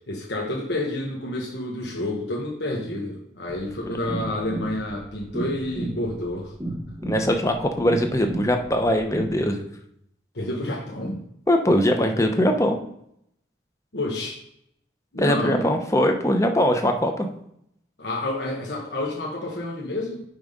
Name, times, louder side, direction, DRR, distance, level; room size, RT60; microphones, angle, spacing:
voice 1, 0.1-6.5 10.3-11.2 13.9-14.4 15.1-15.7 18.0-20.2, left 1 dB, 70° left, -2 dB, 1.2 m, -29 dB
sound 1, 3.5-9.4, right 1 dB, 15° right, 0.9 m, -33 dB
voice 2, 7.1-9.6 11.5-12.8 15.2-17.3, equal, 15° left, 4 dB, 0.8 m, -21 dB
8.7 x 3.5 x 5.4 m, 0.74 s
head